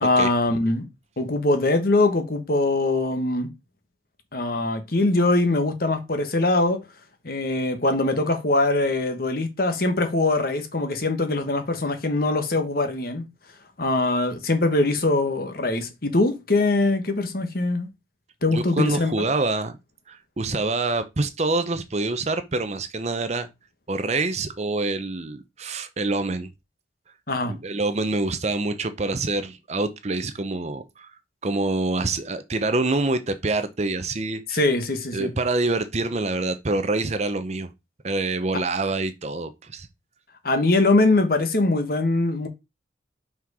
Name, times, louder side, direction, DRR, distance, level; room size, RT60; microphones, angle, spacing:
voice 1, 0.0-0.9 1.2-3.5 4.3-6.8 7.2-13.3 13.8-17.9 18.4-19.1 27.3-27.5 34.5-35.3 40.4-42.5, left 2 dB, 50° left, 1.2 m, -22 dB
voice 2, 18.5-19.8 20.1-23.5 23.9-26.5 27.5-31.1 31.4-34.6 35.1-37.7 38.0-39.9, right 2 dB, 35° right, 0.7 m, -26 dB
5.8 x 4.5 x 4.8 m
head